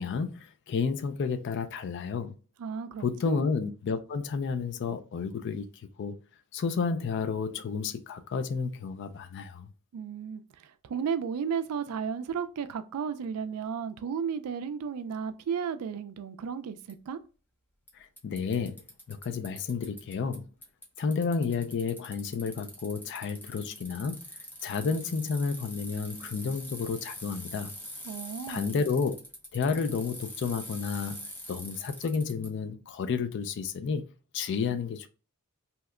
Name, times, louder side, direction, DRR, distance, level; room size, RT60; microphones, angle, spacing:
voice 1, 0.0-2.3 3.0-5.7 6.0-6.1 6.5-9.7 17.9-20.5 21.0-24.2 24.6-27.7 28.5-29.2 29.5-34.1 34.3-35.1, left 5 dB, 50° left, 0.3 m, -31 dB
voice 2, 2.6-3.5 9.9-17.2 28.0-28.7, right 7 dB, 75° right, 0.4 m, -34 dB
Bicycle, 16.9-17.0 17.9-18.0 18.2-20.4 20.6-32.5, equal, 10° left, 0.6 m, -44 dB
2.8 x 2.1 x 3.5 m
head